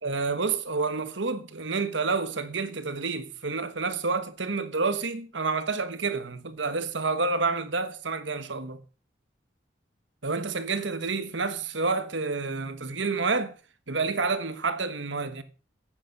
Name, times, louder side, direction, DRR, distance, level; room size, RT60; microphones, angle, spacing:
voice 1, 0.0-8.8 10.2-13.5 13.9-15.4, right 4 dB, 85° right, 1.3 m, -29 dB
10.0 x 8.7 x 6.6 m
head